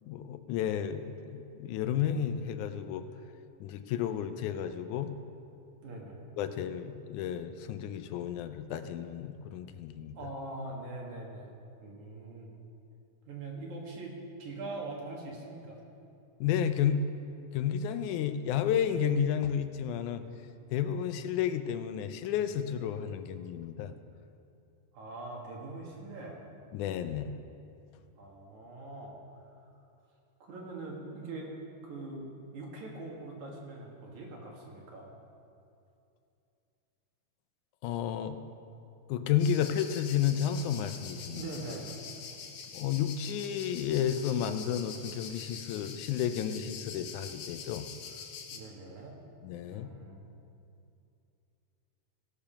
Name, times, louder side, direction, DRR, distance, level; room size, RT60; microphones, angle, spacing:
voice 1, 0.0-3.1 3.6-5.1 6.4-10.2 16.4-17.0 17.5-20.2 20.7-23.9 26.7-27.3 37.8-38.4 39.1-41.4 42.7-47.9 49.4-49.9, left 9 dB, 80° left, 9 dB, 2.1 m, -32 dB
voice 2, 5.8-6.2 10.1-11.5 11.8-12.5 13.3-15.8 24.9-26.4 28.2-29.2 30.4-31.5 31.8-35.1 41.3-42.0 48.5-49.2 49.7-50.4, right 2 dB, 70° right, -2 dB, 3.1 m, -42 dB
sound 1, 39.4-48.6, left 6 dB, 65° left, 1.9 m, -45 dB
17.0 x 6.9 x 5.7 m, 2.6 s
omnidirectional pair, 3.5 m